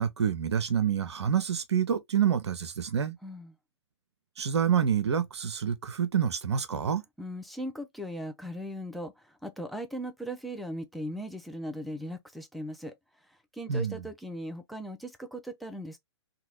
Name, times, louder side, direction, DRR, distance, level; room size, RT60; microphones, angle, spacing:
voice 1, 0.0-3.2 4.4-7.0 13.7-14.0, right 8 dB, 70° right, 0.7 m, -27 dB
voice 2, 3.2-3.5 7.2-12.9 13.3-16.0, equal, ahead, 0.4 m, -38 dB
2.7 x 2.3 x 3.0 m
figure-of-eight pair, 120°, 15 cm